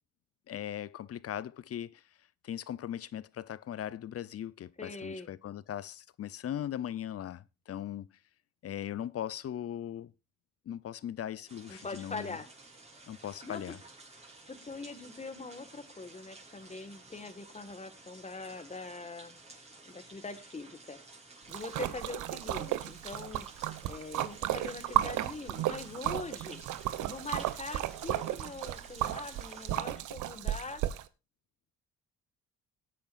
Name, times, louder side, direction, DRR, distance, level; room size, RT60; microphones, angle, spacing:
voice 1, 0.5-2.0 2.4-8.1 8.6-10.1 10.7-12.4 13.1-13.8, left 10 dB, 50° left, 0.7 m, -39 dB
voice 2, 4.8-5.3 11.7-12.5 13.4-13.7 14.5-19.4 19.9-21.0 21.5-23.5 23.9-26.6 27.0-30.8, left 3 dB, 25° left, 1.8 m, -43 dB
sound 1, 11.5-29.8, right 2 dB, 20° right, 4.1 m, -54 dB
Splash splatter, 21.5-31.0, right 13 dB, 85° right, 0.8 m, -34 dB
18.5 x 8.7 x 2.5 m
cardioid pair, 90°, 30 cm